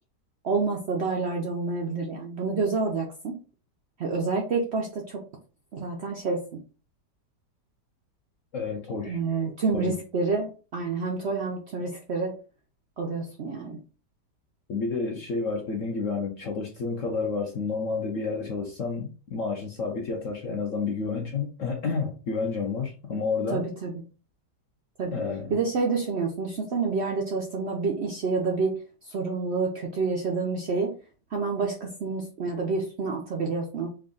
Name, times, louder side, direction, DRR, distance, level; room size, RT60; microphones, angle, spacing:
voice 1, 0.4-3.4 4.0-5.2 5.7-6.6 9.1-12.3 13.0-13.8 23.5-23.9 25.0-25.2 25.5-28.7 29.0-30.9 31.3-33.9, right 4 dB, 80° right, 0.6 m, -28 dB
voice 2, 8.5-9.2 9.7-10.0 14.7-23.6 25.1-25.5, left 4 dB, 65° left, 0.8 m, -30 dB
3.4 x 2.4 x 3.7 m
omnidirectional pair, 1.9 m